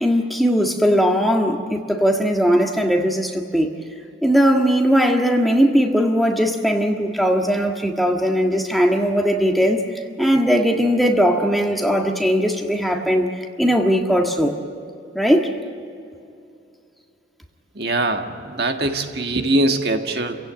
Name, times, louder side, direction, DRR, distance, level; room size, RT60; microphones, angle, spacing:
voice 1, 0.0-3.7 4.2-9.8 10.2-13.3 13.6-14.5 15.1-15.5, equal, ahead, 2 dB, 1.6 m, -19 dB
voice 2, 17.7-20.4, right 2 dB, 55° right, 5 dB, 1.7 m, -22 dB
29.5 x 16.5 x 9.1 m, 2.5 s
head